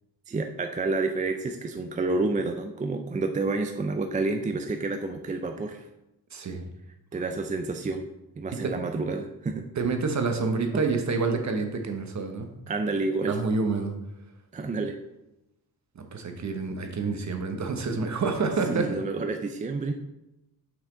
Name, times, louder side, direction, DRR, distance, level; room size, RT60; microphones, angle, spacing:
voice 1, 0.3-5.9 7.1-8.1 8.4-9.7 10.7-10.8 12.7-13.4 14.5-15.0 18.7-19.9, right 3 dB, 20° right, 6 dB, 0.3 m, -29 dB
voice 2, 6.3-6.6 8.6-8.7 9.8-12.5 13.3-13.9 15.9-18.8, right 4 dB, 45° right, 5 dB, 0.9 m, -28 dB
6.0 x 5.7 x 3.8 m, 0.91 s
wide cardioid pair, 125°, 39 cm